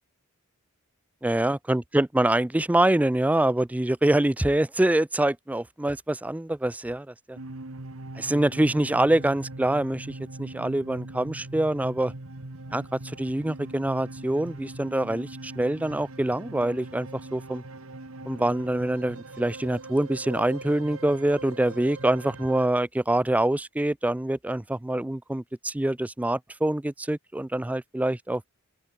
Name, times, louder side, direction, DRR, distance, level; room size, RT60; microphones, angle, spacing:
voice 1, 1.2-7.4 8.2-12.1 12.7-17.6 18.3-28.4, right 1 dB, 5° right, 0.3 m, -25 dB
sound 1, 7.3-22.7, right 2 dB, 70° right, 1.8 m, -41 dB
open air
head